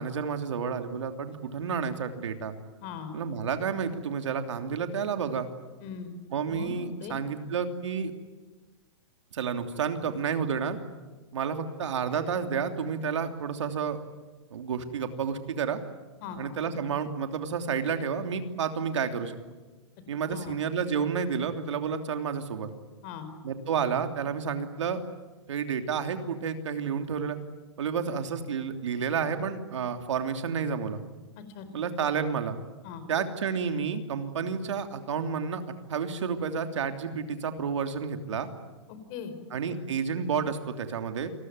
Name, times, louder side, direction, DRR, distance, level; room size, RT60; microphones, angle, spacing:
voice 1, 0.0-2.5 3.1-5.5 6.3-8.1 9.3-10.8 11.3-14.0 14.5-15.8 16.4-19.4 20.1-22.7 23.4-25.0 25.5-27.4 27.8-31.0 31.7-32.6 33.1-35.6 35.9-38.5 39.5-41.3, right 6 dB, 85° right, 6 dB, 3.0 m, -30 dB
voice 2, 2.8-3.1 5.8-6.1 6.5-6.7 7.0-7.2 16.2-16.4 20.3-20.6 23.0-23.3 31.4-31.7 32.8-33.0 38.9-39.3, left 7 dB, 35° left, 10 dB, 4.5 m, -40 dB
28.5 x 21.0 x 9.6 m, 1.3 s
hypercardioid pair, 155°, 15 cm